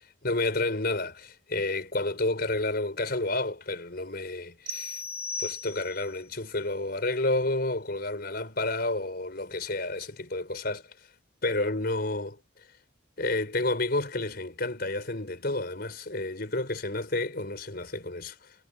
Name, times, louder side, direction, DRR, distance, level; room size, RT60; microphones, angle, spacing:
voice 1, 0.2-5.0 5.4-10.8 11.4-12.4 13.2-18.5, left 2 dB, 50° left, 4.8 m, -30 dB
sound 1, 4.7-6.2, left 3 dB, 45° right, 4.4 m, -36 dB
head